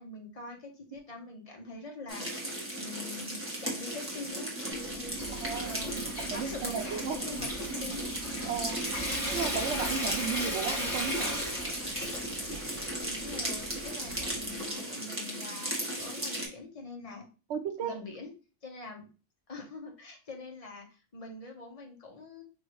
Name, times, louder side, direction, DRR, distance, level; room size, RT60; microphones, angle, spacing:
voice 1, 0.0-2.3 2.8-5.2 5.7-8.0 13.0-17.3 17.8-18.3 18.6-19.1 19.5-22.4, left 2 dB, 30° left, 1 dB, 1.0 m, -44 dB
sound 1, 2.1-16.5, right 1 dB, 10° right, 1.1 m, -36 dB
Water tap faucet / Sink (filling or washing) / Trickle dribble, 4.7-14.7, equal, 55° left, 2.9 m, -37 dB
voice 2, 5.4-5.8 6.2-7.2 8.5-8.8 9.3-11.4 17.5-17.9, right 6 dB, 75° right, 5 dB, 0.9 m, -34 dB
4.8 x 2.7 x 3.0 m, 0.33 s
omnidirectional pair, 1.2 m